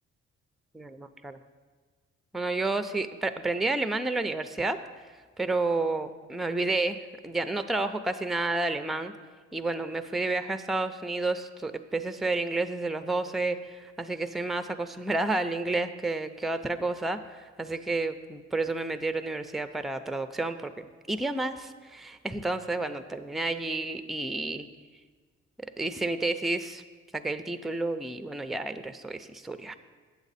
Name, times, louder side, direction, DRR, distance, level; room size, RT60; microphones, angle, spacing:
voice 1, 0.8-1.4 2.3-4.8 5.4-9.1 9.5-24.7 25.6-26.8 27.1-29.8, right 2 dB, ahead, 11 dB, 0.4 m, -30 dB
8.5 x 7.1 x 4.1 m, 1.5 s
supercardioid pair, 65°, 30 cm